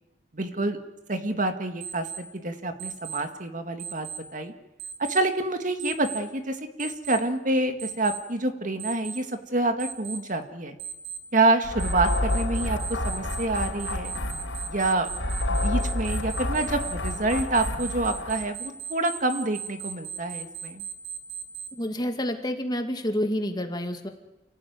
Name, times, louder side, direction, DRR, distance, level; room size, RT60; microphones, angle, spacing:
voice 1, 0.3-0.8 1.1-4.5 5.0-10.8 11.3-12.8 13.0-14.1 14.7-15.1 15.5-20.8, right 2 dB, 45° right, 7 dB, 2.1 m, -27 dB
Alarm, 1.8-2.2 2.8-3.2 3.8-4.2 4.8-5.2 5.8-6.2 6.8-7.2 7.8-8.2 8.8-9.2 9.8-10.2 10.8-11.2 11.8-21.7, right 8 dB, 60° right, 4.8 m, -36 dB
sound 1, 11.6-18.5, left 1 dB, 90° left, 4.9 m, -29 dB
voice 2, 21.7-24.1, equal, 25° left, 5 dB, 2.3 m, -28 dB
29.5 x 16.0 x 9.6 m, 0.98 s
head